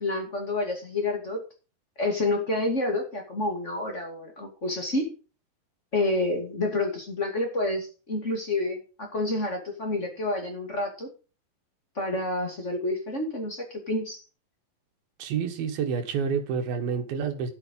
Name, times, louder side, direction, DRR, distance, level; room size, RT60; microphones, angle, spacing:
voice 1, 0.0-1.4 2.0-5.1 5.9-11.1 12.0-14.2, left 2 dB, 25° left, 2.0 m, -29 dB
voice 2, 15.2-17.5, right 6 dB, 85° right, 3.4 m, -28 dB
11.5 x 8.1 x 5.4 m
omnidirectional pair, 4.1 m